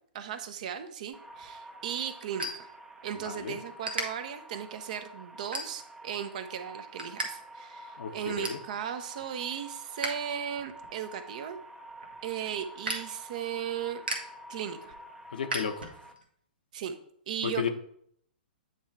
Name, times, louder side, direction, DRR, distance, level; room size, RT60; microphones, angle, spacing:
voice 1, 0.1-2.7 3.0-11.6 12.2-14.0 14.5-14.9 16.7-16.9 17.3-17.7, right 9 dB, 50° right, 9 dB, 0.8 m, -36 dB
sound 1, 1.1-16.1, right 1 dB, 5° right, 0.6 m, -48 dB
sound 2, 1.2-3.3 3.6-4.0 4.6-4.8 5.4-6.1 6.5-7.3 7.6-7.7 8.0-8.7 9.1-10.1 10.5-16.2, right 2 dB, 75° right, 1.5 m, -38 dB
voice 2, 3.2-3.6 8.0-8.6 15.3-15.9 17.4-17.7, left 7 dB, 60° left, 7 dB, 0.8 m, -33 dB
9.1 x 3.2 x 4.6 m, 0.66 s
figure-of-eight pair, 115°, 5 cm